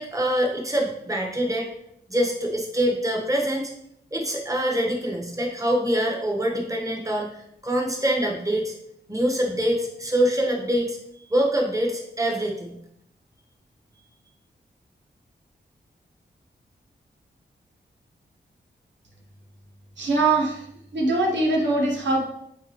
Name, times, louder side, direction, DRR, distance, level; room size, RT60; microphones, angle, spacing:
voice 1, 0.0-1.7 2.1-3.7 4.1-8.7 9.1-11.0 11.3-12.7, right 1 dB, 20° right, 0 dB, 1.4 m, -25 dB
voice 2, 20.0-20.7 20.9-22.3, right 2 dB, 90° right, -1 dB, 1.2 m, -22 dB
8.9 x 3.6 x 3.1 m, 0.77 s
cardioid pair, 70°, 18 cm